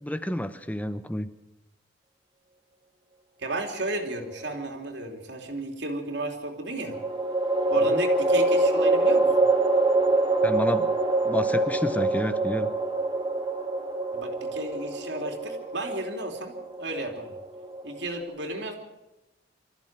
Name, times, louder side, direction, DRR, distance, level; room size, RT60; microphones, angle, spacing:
voice 1, 0.0-1.3 7.9-8.0 10.4-10.9 11.2-12.7, equal, 10° left, 11 dB, 0.9 m, -30 dB
voice 2, 3.4-7.0 7.7-9.3 14.1-17.4 17.8-18.7, right 2 dB, 70° right, 2 dB, 3.2 m, -33 dB
sound 1, 3.8-4.6 6.9-18.2, right 2 dB, 25° right, 3.7 m, -25 dB
25.0 x 14.5 x 7.6 m, 0.98 s
head